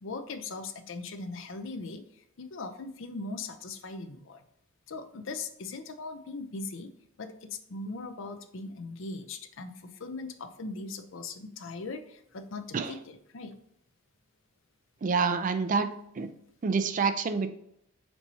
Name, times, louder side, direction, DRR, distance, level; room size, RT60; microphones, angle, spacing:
voice 1, 0.0-4.4 4.9-6.9 7.2-13.6, left 3 dB, 60° left, 8 dB, 0.5 m, -40 dB
voice 2, 15.0-16.3 16.6-17.5, right 5 dB, 40° right, 10 dB, 0.3 m, -27 dB
4.5 x 4.1 x 2.7 m, 0.75 s
head